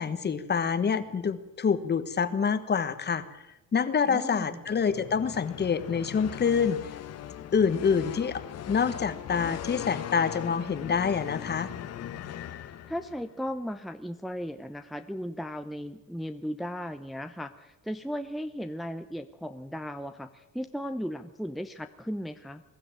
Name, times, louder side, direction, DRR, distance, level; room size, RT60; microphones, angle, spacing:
voice 1, 0.0-3.2 3.7-6.8 7.5-11.7, left 6 dB, 30° left, 12 dB, 1.4 m, -26 dB
voice 2, 4.1-4.6 12.9-22.6, equal, ahead, 7 dB, 0.7 m, -36 dB
sound 1, 4.6-13.3, left 10 dB, 50° left, 1.2 m, -39 dB
22.5 x 13.0 x 9.1 m, 0.97 s
cardioid pair, 125°, 32 cm